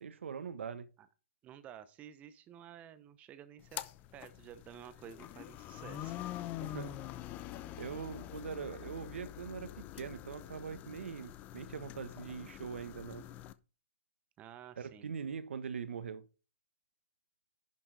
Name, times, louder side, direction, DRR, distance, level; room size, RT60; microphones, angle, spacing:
voice 1, 0.0-0.9 6.6-7.0 7.8-13.3 14.8-16.2, right 6 dB, 60° right, 1.3 m, -42 dB
voice 2, 1.4-3.8 4.1-6.3 7.6-7.7 14.4-15.1, right 10 dB, 20° right, 0.9 m, -52 dB
sound 1, 3.6-13.5, left 13 dB, 20° left, 0.6 m, -45 dB
11.0 x 5.9 x 4.1 m
figure-of-eight pair, 130°, 7 cm